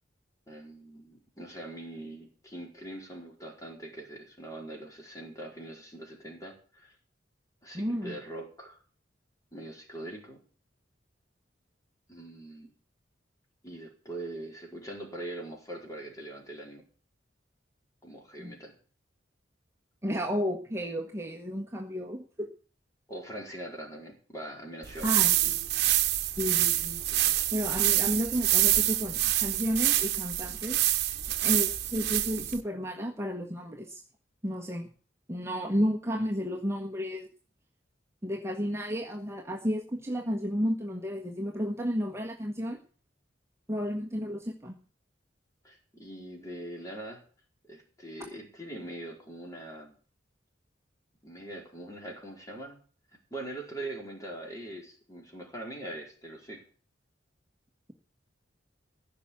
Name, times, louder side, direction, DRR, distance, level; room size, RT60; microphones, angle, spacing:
voice 1, 0.5-6.9 7.6-8.8 9.5-10.4 12.1-12.7 13.6-16.8 18.0-18.7 23.1-25.1 45.6-47.2 47.7-50.0 51.2-52.8 53.3-56.6, right 1 dB, 20° left, 0 dB, 4.4 m, -42 dB
voice 2, 7.7-8.2 18.4-18.5 20.0-22.5 25.0-25.4 26.4-27.2 27.5-30.8 31.4-34.0 34.4-34.9 35.3-37.3 38.2-42.8 43.7-44.7, equal, 15° right, -1 dB, 1.5 m, -32 dB
sound 1, 24.8-32.6, right 14 dB, 60° right, 1.1 m, -26 dB
15.5 x 6.0 x 10.0 m, 0.41 s
head